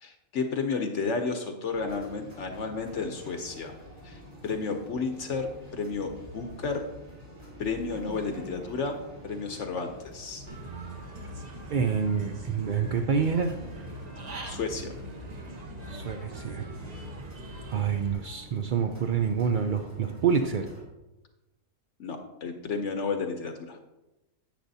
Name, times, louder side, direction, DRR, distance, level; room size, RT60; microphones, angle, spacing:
voice 1, 0.0-3.7 4.0-6.8 7.6-8.9 9.2-10.4 14.4-14.9 22.0-23.8, left 4 dB, 65° left, 5 dB, 1.0 m, -32 dB
sound 1, 1.7-20.8, equal, 55° right, 3.9 m, -47 dB
Human voice / Bird, 10.5-18.1, right 1 dB, 35° right, 0.8 m, -42 dB
voice 2, 11.7-13.5 15.9-16.7 17.7-20.7, right 6 dB, 75° right, 5 dB, 0.4 m, -27 dB
10.0 x 8.3 x 2.7 m, 1.0 s
omnidirectional pair, 1.4 m